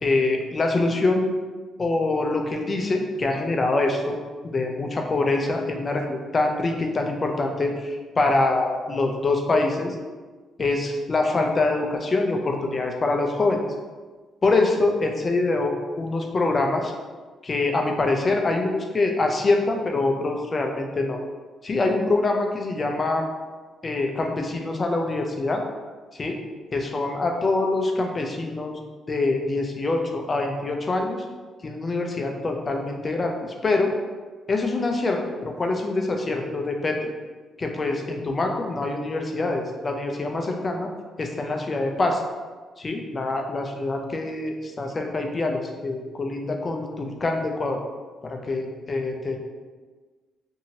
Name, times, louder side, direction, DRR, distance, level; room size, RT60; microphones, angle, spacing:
voice 1, 0.0-1.4 1.8-4.2 4.4-9.9 10.6-13.6 14.4-16.9 17.4-21.2 21.6-23.2 23.8-25.6 26.2-26.4 26.7-28.8 29.1-31.2 31.6-33.9 34.5-37.1 37.6-40.9 41.2-42.2 42.8-47.8 48.2-49.4, left 2 dB, 35° left, 3 dB, 0.4 m, -25 dB
2.8 x 2.7 x 2.8 m, 1.4 s
cardioid pair, 90°, 0 cm